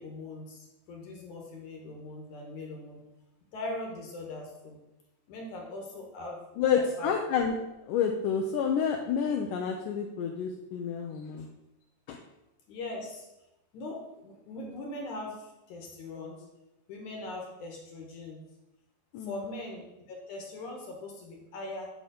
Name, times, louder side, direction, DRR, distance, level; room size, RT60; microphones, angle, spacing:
voice 1, 0.0-3.0 3.5-4.8 5.3-6.4 6.7-7.2 12.7-13.3 13.7-16.5 16.9-18.4 19.2-21.9, left 2 dB, 65° left, 0 dB, 2.5 m, -41 dB
voice 2, 6.6-7.6 7.9-11.5 12.1-12.2 19.1-19.4, left 7 dB, 80° left, 2 dB, 2.0 m, -29 dB
11.0 x 3.8 x 5.2 m, 0.94 s
omnidirectional pair, 4.2 m